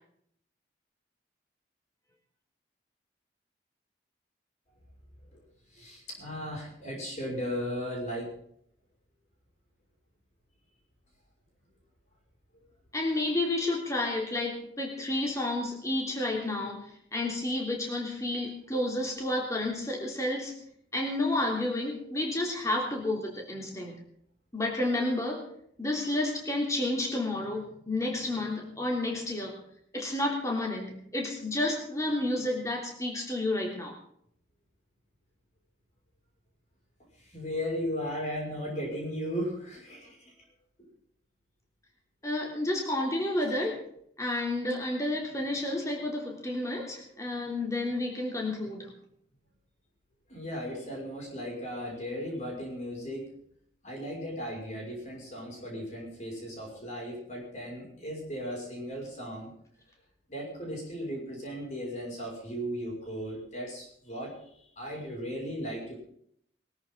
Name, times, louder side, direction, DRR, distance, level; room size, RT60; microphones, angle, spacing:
voice 1, 5.7-8.3 37.2-40.3 40.8-40.9 50.3-53.3 53.8-59.5 60.3-66.0, equal, 40° left, -2 dB, 6.1 m, -36 dB
voice 2, 12.9-20.5 20.9-24.0 24.5-25.5 25.8-29.6 29.9-33.9 42.2-43.8 44.2-48.9, left 1 dB, 20° left, -1 dB, 3.2 m, -31 dB
21.5 x 14.0 x 3.9 m, 0.66 s
head